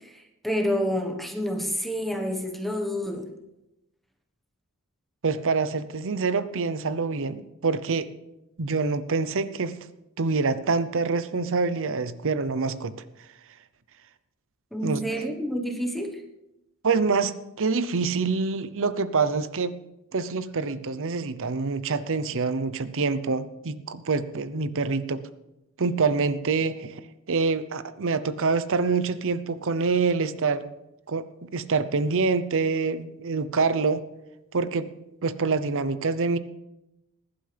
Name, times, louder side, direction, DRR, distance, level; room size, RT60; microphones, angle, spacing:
voice 1, 0.0-3.4 14.7-16.2, equal, ahead, 3 dB, 1.3 m, -29 dB
voice 2, 5.2-8.1 8.6-9.7 10.2-13.0 14.8-15.3 16.8-19.8 20.1-25.2 25.8-27.0 27.3-30.7 31.1-34.0 34.5-34.9 35.2-36.4, right 4 dB, 65° right, 13 dB, 0.8 m, -26 dB
20.0 x 11.5 x 3.4 m, 0.92 s
head